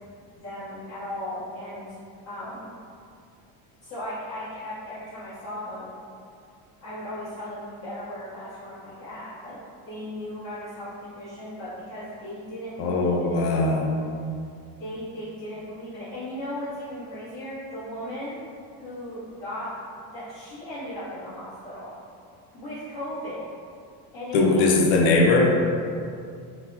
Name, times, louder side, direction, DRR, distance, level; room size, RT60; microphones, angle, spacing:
voice 1, 0.4-1.9 2.2-2.8 3.8-5.9 6.8-9.6 9.9-13.5 14.8-18.4 18.8-19.7 20.1-21.9 22.5-23.4 24.1-24.7, left 1 dB, 40° left, -15 dB, 1.1 m, -36 dB
voice 2, 12.8-13.9 24.3-25.6, left 2 dB, 65° left, 0 dB, 0.6 m, -20 dB
4.0 x 2.1 x 2.7 m, 2.3 s
cardioid pair, 135°, 42 cm